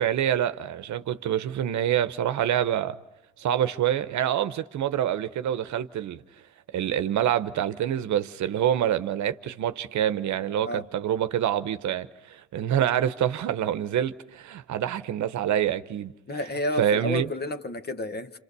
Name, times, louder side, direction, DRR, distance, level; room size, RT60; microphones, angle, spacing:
voice 1, 0.0-3.0 3.4-6.2 6.7-16.1 16.8-17.3, right 10 dB, 70° right, 1.0 m, -26 dB
voice 2, 16.3-18.4, left 1 dB, 35° left, 1.5 m, -31 dB
28.0 x 27.0 x 6.8 m
cardioid pair, 90°, 30 cm